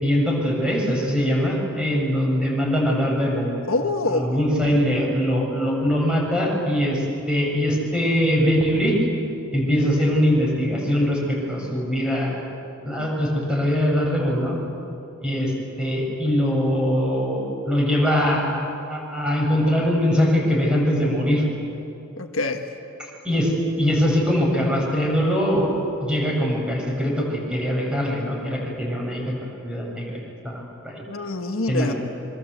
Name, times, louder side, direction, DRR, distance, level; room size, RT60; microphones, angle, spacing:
voice 1, 0.0-3.5 4.1-9.0 9.5-12.4 12.8-14.6 15.2-15.5 15.8-18.6 18.9-21.4 23.2-25.8 26.1-29.3 29.6-31.0 31.7-32.0, equal, 5° right, -2 dB, 6.7 m, -22 dB
voice 2, 3.6-4.5 22.2-22.7 31.1-31.9, left 2 dB, 75° left, 5 dB, 1.5 m, -25 dB
26.5 x 24.5 x 8.1 m, 2.8 s
head